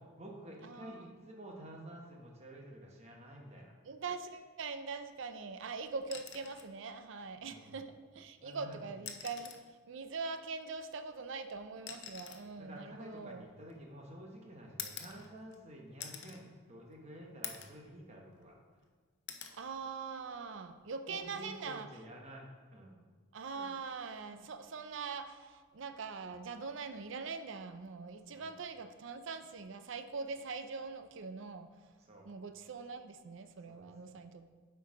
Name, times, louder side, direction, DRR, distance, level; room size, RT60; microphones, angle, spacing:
voice 1, 0.0-3.8 7.4-7.8 8.4-8.9 12.4-18.6 21.1-22.4 22.7-23.0 28.3-28.5 32.0-32.3 33.7-33.9, right 1 dB, 30° right, 0 dB, 1.1 m, -50 dB
voice 2, 3.9-7.9 8.1-9.5 9.9-13.4 19.6-21.9 23.3-31.7 32.3-34.5, right 4 dB, 65° right, 9 dB, 0.5 m, -42 dB
sound 1, 6.0-6.7 8.2-8.3 8.9-9.7 10.9-14.0 14.8-15.6 16.0-16.4 16.9-17.0 17.4-17.8 18.2-18.9 19.3-19.6 21.1-21.3, left 8 dB, 55° left, 0.6 m, -47 dB
7.8 x 4.7 x 4.8 m, 1.5 s
head